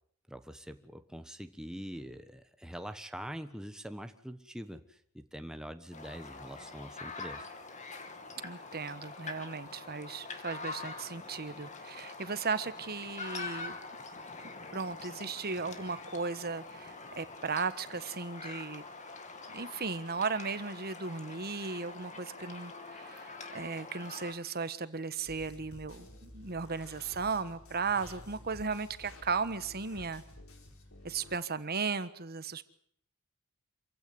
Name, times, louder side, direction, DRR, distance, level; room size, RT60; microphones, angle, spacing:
voice 1, 0.3-7.5, equal, 5° right, 8 dB, 1.3 m, -44 dB
sound 1, 5.9-24.3, left 3 dB, 35° left, 2.7 m, -45 dB
voice 2, 8.4-13.8 14.4-18.8 19.5-30.2 31.0-32.6, right 4 dB, 45° right, 13 dB, 1.3 m, -36 dB
sound 2, 25.2-31.4, left 1 dB, 65° left, 4.6 m, -52 dB
26.5 x 16.0 x 9.6 m, 0.65 s
head